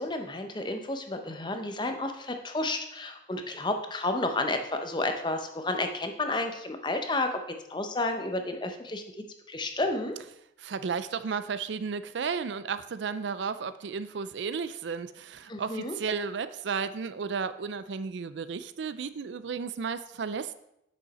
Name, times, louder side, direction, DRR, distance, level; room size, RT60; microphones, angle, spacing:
voice 1, 0.0-7.4 7.7-9.0 9.5-10.2 15.5-15.9, left 2 dB, 25° left, 6 dB, 0.7 m, -31 dB
voice 2, 10.6-20.5, right 5 dB, 75° right, 13 dB, 0.4 m, -33 dB
8.4 x 6.3 x 4.2 m, 0.82 s
head